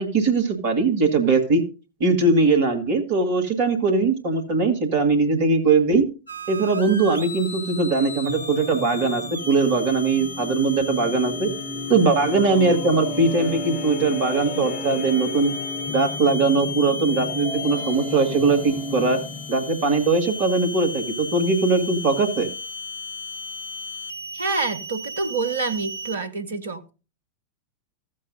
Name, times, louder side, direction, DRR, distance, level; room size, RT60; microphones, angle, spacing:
voice 1, 0.0-1.6 2.0-6.0 6.5-11.5 11.9-15.6 15.9-19.2 19.5-22.5, right 3 dB, 50° right, 2.1 m, -20 dB
sound 1, 6.3-26.2, left 3 dB, 85° left, 1.1 m, -35 dB
sound 2, 8.3-19.7, left 2 dB, 20° left, 4.5 m, -33 dB
voice 2, 24.3-26.9, right 3 dB, 70° right, 0.9 m, -27 dB
15.0 x 7.5 x 2.7 m
figure-of-eight pair, 90°, 0 cm